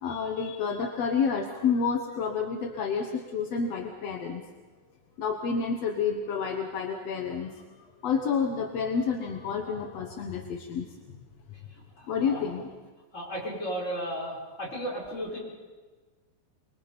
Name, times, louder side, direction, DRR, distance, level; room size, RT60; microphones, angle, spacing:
voice 1, 0.0-4.4 5.2-7.6 8.0-11.2 12.1-12.7, left 6 dB, 60° left, 3 dB, 1.8 m, -29 dB
voice 2, 12.0-12.4 13.1-15.4, equal, 15° left, -4 dB, 6.4 m, -34 dB
25.5 x 23.0 x 5.3 m, 1.3 s
omnidirectional pair, 4.5 m